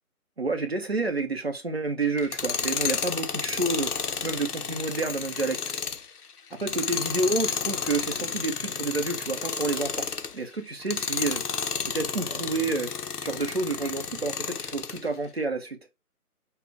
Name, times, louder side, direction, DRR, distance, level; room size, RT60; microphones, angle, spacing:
voice 1, 0.4-3.9 4.2-5.6 6.5-10.1 10.3-11.4 11.9-12.9 13.2-15.8, right 3 dB, 45° right, 1.0 m, -29 dB
Tools, 2.2-10.4 10.8-15.0, left 6 dB, 85° left, 0.9 m, -31 dB
5.8 x 2.4 x 3.6 m
figure-of-eight pair, 175°, 45 cm